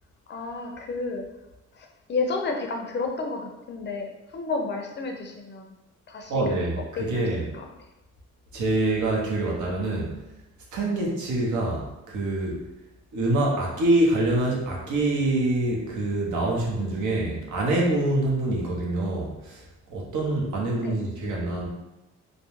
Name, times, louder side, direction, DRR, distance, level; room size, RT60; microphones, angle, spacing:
voice 1, 0.3-1.3 1.7-5.7 6.1-7.3 7.5-7.7 20.8-21.0, left 3 dB, 35° left, 2 dB, 0.4 m, -31 dB
voice 2, 6.3-7.4 8.5-10.1 10.7-12.6 13.1-19.6 19.9-21.7, right 2 dB, 75° right, -2 dB, 0.7 m, -25 dB
2.2 x 2.0 x 3.0 m, 0.99 s
cardioid pair, 90°, 30 cm